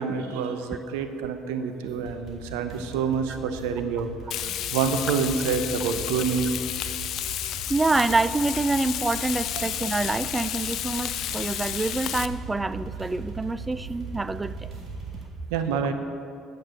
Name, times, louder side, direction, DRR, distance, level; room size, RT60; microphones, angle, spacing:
voice 1, 0.0-4.1 4.7-6.5 15.5-15.9, right 6 dB, 85° right, 8 dB, 0.7 m, -27 dB
sound 1, 1.9-15.3, right 4 dB, 55° right, 2.5 m, -39 dB
Frying (food), 4.3-12.3, left 11 dB, 65° left, 0.4 m, -32 dB
voice 2, 7.7-14.7, right 3 dB, 20° right, 16 dB, 0.3 m, -26 dB
8.8 x 6.4 x 6.3 m, 2.5 s
supercardioid pair, 80°, 0 cm